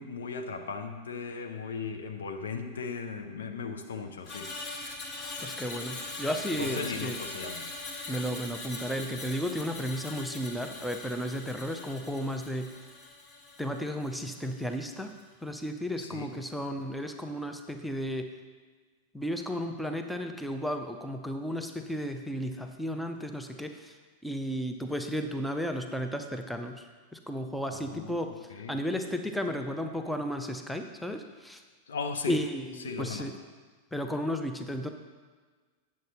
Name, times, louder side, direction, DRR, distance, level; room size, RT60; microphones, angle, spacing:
voice 1, 0.0-4.5 6.6-7.7 16.0-16.3 27.7-28.8 31.9-32.4 32.8-33.3, left 5 dB, 65° left, 5 dB, 0.8 m, -37 dB
Screech, 4.2-14.6 14.9-15.2, left 2 dB, 25° left, 1.3 m, -41 dB
voice 2, 5.4-7.2 8.1-12.7 13.6-18.3 19.1-24.0 24.2-31.6 32.3-33.4 33.9-34.9, equal, 5° left, 5 dB, 0.6 m, -34 dB
9.2 x 7.4 x 4.2 m, 1.4 s
figure-of-eight pair, 90°, 0 cm